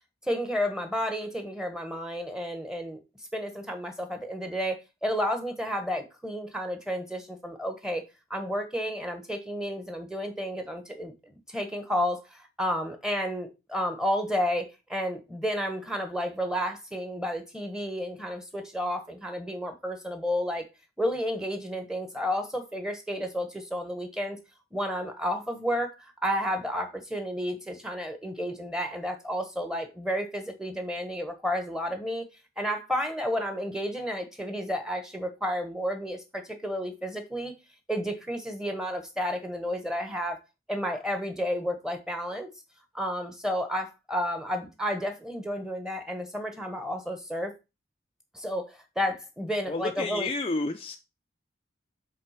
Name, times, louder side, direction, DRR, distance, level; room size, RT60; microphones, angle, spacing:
voice 1, 0.2-3.0 3.3-8.0 8.3-11.1 11.5-20.6 21.0-24.4 24.7-32.2 32.6-37.5 37.9-40.4 40.7-42.5 42.9-47.5 48.3-50.3, equal, 5° right, 1.2 m, -31 dB
voice 2, 49.7-51.0, left 3 dB, 30° left, 0.5 m, -30 dB
7.6 x 3.8 x 5.7 m
head